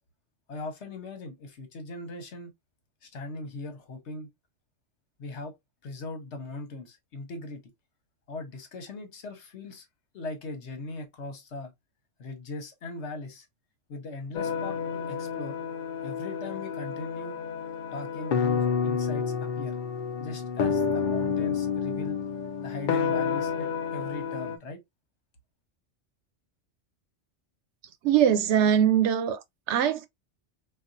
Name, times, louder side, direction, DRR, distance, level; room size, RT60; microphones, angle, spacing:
voice 1, 0.5-2.5 3.0-4.3 5.2-5.6 5.8-7.6 8.3-9.9 10.1-11.7 12.2-13.5 13.9-15.6 16.0-17.4 17.9-19.8 20.2-22.2 22.6-24.8, left 2 dB, 70° left, 1.2 m, -39 dB
sound 1, 14.3-24.6, left 6 dB, 55° left, 0.6 m, -29 dB
voice 2, 28.0-29.4 29.7-30.1, right 9 dB, 75° right, 0.9 m, -22 dB
4.1 x 2.3 x 2.6 m
omnidirectional pair, 1.2 m